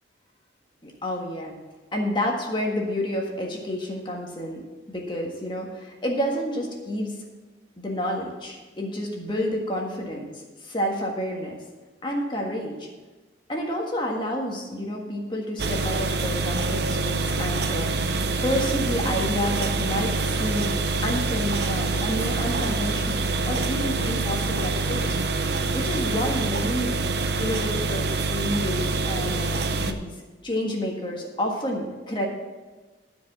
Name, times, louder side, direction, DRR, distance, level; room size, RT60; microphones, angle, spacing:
voice 1, 0.8-1.5 1.9-7.2 7.8-10.3 10.6-11.6 12.0-12.9 13.5-17.9 18.4-20.7 21.0-25.2 25.7-27.0 27.4-30.1 30.4-32.3, equal, 25° left, 0 dB, 1.6 m, -29 dB
sound 1, 15.6-29.9, right 3 dB, 65° right, 0.7 m, -26 dB
12.5 x 5.1 x 7.3 m, 1.3 s
head